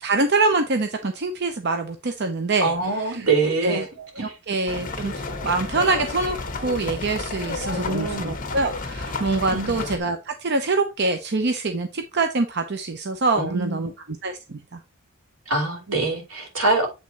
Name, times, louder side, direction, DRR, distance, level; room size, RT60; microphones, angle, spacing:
voice 1, 0.0-2.7 3.1-3.3 3.6-6.4 6.6-13.9 14.2-14.8, right 3 dB, 50° right, 0.7 m, -25 dB
voice 2, 2.6-3.9 4.2-4.4 7.7-8.3 9.5-9.8 13.3-13.9 15.5-16.9, right 3 dB, 80° right, 2.8 m, -24 dB
sound 1, 4.7-10.0, left 3 dB, 40° left, 1.2 m, -31 dB
8.4 x 3.6 x 4.1 m
head